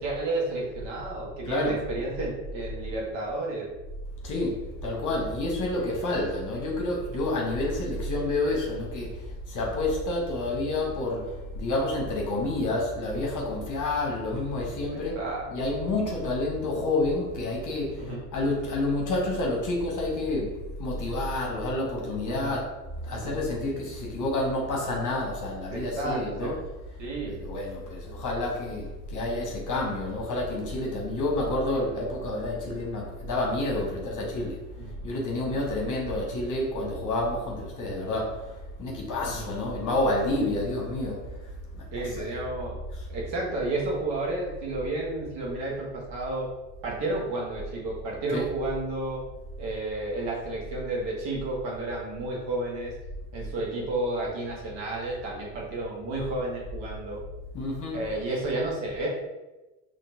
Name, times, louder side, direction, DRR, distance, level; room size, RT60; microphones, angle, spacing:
voice 1, 0.0-3.7 14.9-15.5 18.0-18.2 22.3-22.6 23.1-23.4 25.7-26.6 27.0-27.4 34.8-34.9 35.4-35.6 39.2-39.5 41.9-42.8 43.1-46.5 46.8-49.2 49.6-52.9 53.3-57.2 57.9-59.1, right 2 dB, 55° right, -3 dB, 1.5 m, -31 dB
voice 2, 1.5-1.8 4.2-15.2 15.5-22.7 23.0-26.6 27.3-42.3 42.9-43.0 48.3-48.5 57.5-58.0, left 2 dB, 40° left, -1 dB, 1.1 m, -29 dB
4.2 x 3.1 x 2.7 m, 1.1 s
hypercardioid pair, 70°, 50 cm